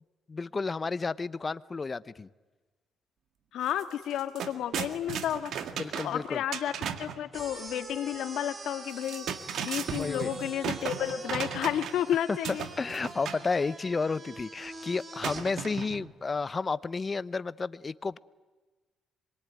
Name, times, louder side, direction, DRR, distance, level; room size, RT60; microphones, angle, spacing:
voice 1, 0.3-2.3 5.8-6.4 9.9-10.3 12.3-12.4 12.8-18.2, left 4 dB, 30° left, 17 dB, 0.8 m, -32 dB
voice 2, 3.5-5.7 6.0-6.7 7.0-9.3 9.6-12.7, left 10 dB, 80° left, 9 dB, 2.0 m, -31 dB
sound 1, 3.7-3.8 4.1-7.2 8.9-12.1 12.4-13.5 15.2-16.1, right 8 dB, 70° right, 1.9 m, -36 dB
sound 2, 7.3-15.4, right 2 dB, 30° right, 5.0 m, -45 dB
26.0 x 23.0 x 9.5 m, 1.3 s
cardioid pair, 90°, 0 cm